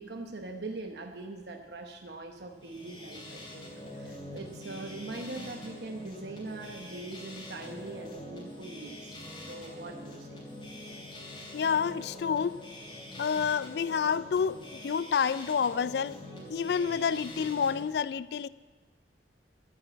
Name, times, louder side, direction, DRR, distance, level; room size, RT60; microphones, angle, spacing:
voice 1, 0.0-9.2 9.5-10.4, right 2 dB, 70° right, 1.0 m, -42 dB
sound 1, 2.5-17.9, left 1 dB, 25° left, 3.1 m, -45 dB
voice 2, 11.5-12.7 13.2-16.2 16.5-18.5, left 6 dB, 65° left, 0.3 m, -29 dB
13.0 x 8.5 x 8.4 m
head